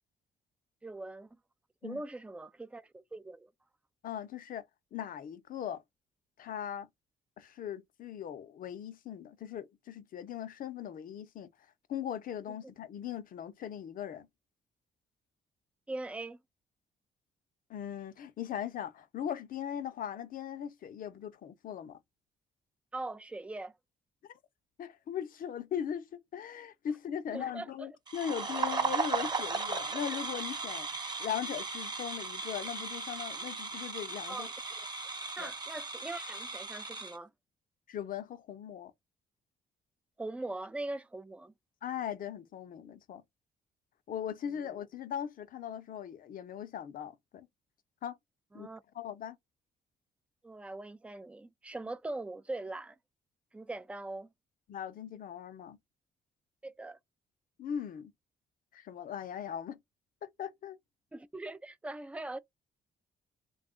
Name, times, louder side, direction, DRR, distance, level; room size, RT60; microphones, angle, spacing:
voice 1, 0.8-1.4 1.8-3.5 12.5-12.6 15.9-16.4 22.9-23.7 27.3-27.9 34.3-34.9 35.4-37.3 40.2-41.5 44.5-44.7 48.5-48.8 50.4-53.0 53.5-54.3 56.6-57.0 61.1-62.4, right 2 dB, 5° right, 0.4 m, -41 dB
voice 2, 4.0-4.6 4.9-5.8 6.4-6.9 7.4-11.5 11.9-14.3 17.7-22.0 24.3-24.4 24.8-30.9 31.2-34.5 35.4-35.5 37.9-38.9 41.8-43.2 44.1-47.5 48.0-48.2 48.5-48.7 48.9-49.4 54.7-55.8 57.6-58.1 58.7-59.8 60.2-60.8, left 9 dB, 55° left, 0.6 m, -39 dB
sound 1, 28.1-37.2, right 4 dB, 25° right, 0.9 m, -36 dB
3.5 x 2.3 x 3.6 m
cardioid pair, 115°, 17 cm